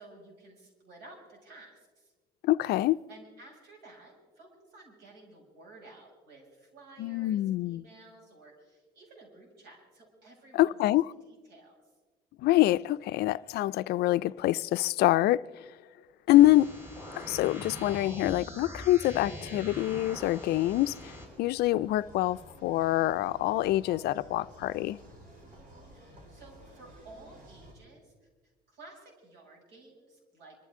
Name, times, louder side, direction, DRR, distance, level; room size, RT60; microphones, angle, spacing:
voice 1, 0.0-2.1 3.1-10.9 11.3-11.8 25.8-28.3 28.7-30.6, right 2 dB, 80° right, 6.5 m, -53 dB
voice 2, 2.4-3.0 7.0-7.8 10.5-11.1 12.4-15.4 16.3-16.7 17.2-21.1 21.4-25.0, left 15 dB, 70° left, 0.4 m, -25 dB
sound 1, 16.3-21.3, left 1 dB, 15° right, 5.4 m, -43 dB
sound 2, 19.8-27.7, right 1 dB, 55° right, 6.9 m, -53 dB
26.5 x 14.0 x 3.7 m
cardioid pair, 110°, 17 cm